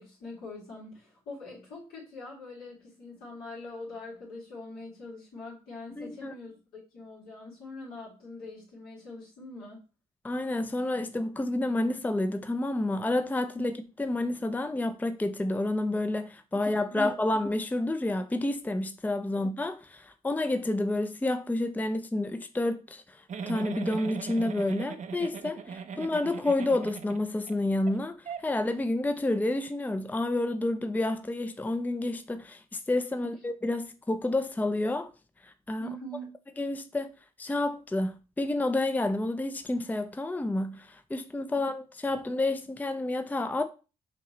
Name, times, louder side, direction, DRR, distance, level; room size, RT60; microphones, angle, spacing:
voice 1, 0.0-9.8 13.5-13.6 16.5-17.0 19.3-19.4 25.9-26.0 33.2-33.4 35.8-36.3 41.5-41.7, left 2 dB, 80° left, 2.3 m, -43 dB
voice 2, 6.0-6.3 10.2-35.1 35.4-35.9 36.6-37.1 37.4-43.6, left 2 dB, 10° left, 0.5 m, -29 dB
Giggle, 23.3-27.5 27.9-28.0 28.3-28.4, right 6 dB, 55° right, 0.5 m, -39 dB
5.1 x 2.8 x 3.1 m
supercardioid pair, 50°, 15 cm